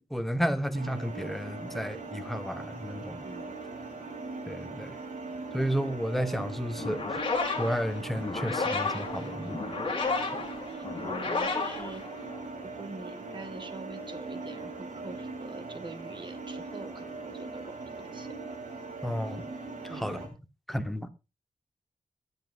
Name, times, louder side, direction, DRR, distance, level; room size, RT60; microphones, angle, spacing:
voice 1, 0.0-3.2 4.5-4.9 5.5-7.3 7.5-9.6 19.0-19.4 19.8-20.2 20.7-21.1, equal, ahead, 1.0 m, -32 dB
sound 1, 0.7-20.3, right 3 dB, 90° right, 3.5 m, -40 dB
voice 2, 3.2-3.5 10.7-12.0 12.8-18.3 19.9-20.1, right 2 dB, 40° right, 1.6 m, -44 dB
sound 2, 6.8-12.6, left 4 dB, 40° left, 2.8 m, -32 dB
23.0 x 7.9 x 2.5 m
wide cardioid pair, 130°, 13 cm